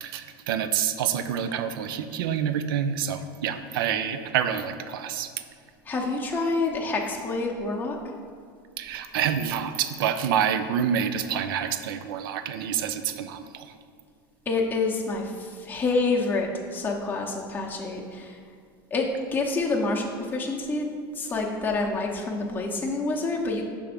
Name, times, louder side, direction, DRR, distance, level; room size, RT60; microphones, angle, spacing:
voice 1, 0.0-5.3 8.8-13.7, right 8 dB, 85° right, 10 dB, 0.4 m, -27 dB
voice 2, 5.9-8.0 14.5-18.4 18.9-20.9 21.1-23.7, left 3 dB, 15° left, -2 dB, 0.7 m, -27 dB
5.6 x 3.5 x 5.1 m, 2.1 s
supercardioid pair, 110°, 11 cm